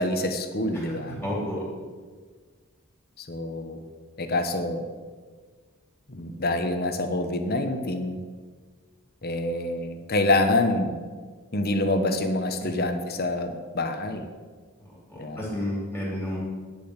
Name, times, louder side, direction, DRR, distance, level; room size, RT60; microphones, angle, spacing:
voice 1, 0.0-1.1 3.2-3.8 4.2-4.9 6.1-8.2 9.2-11.0 11.5-14.3 15.1-15.5, left 2 dB, 45° left, 7 dB, 1.1 m, -26 dB
voice 2, 0.7-1.7 12.6-12.7 14.8-16.4, equal, 5° left, -5 dB, 2.9 m, -32 dB
10.0 x 7.0 x 8.1 m, 1.5 s
head